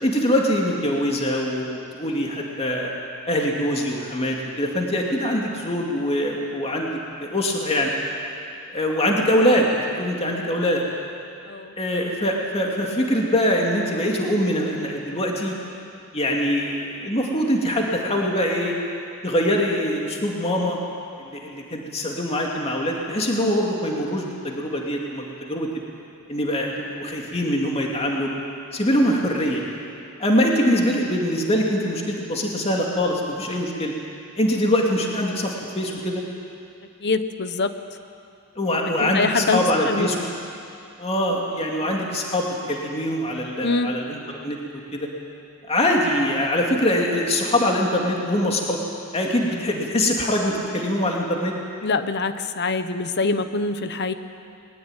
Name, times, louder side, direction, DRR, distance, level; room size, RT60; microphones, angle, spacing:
voice 1, 0.0-2.9 3.3-7.9 8.7-10.8 11.8-15.6 16.1-18.8 19.2-20.8 21.2-25.8 26.3-28.3 28.7-29.6 30.2-33.9 34.4-36.2 38.6-40.3 41.0-45.1 45.7-48.8 49.1-51.5, equal, 30° left, -1 dB, 2.6 m, -23 dB
voice 2, 37.0-37.7 39.0-40.1 43.6-43.9 51.8-54.1, left 3 dB, 50° left, 10 dB, 1.1 m, -24 dB
20.5 x 19.5 x 9.2 m, 2.5 s
head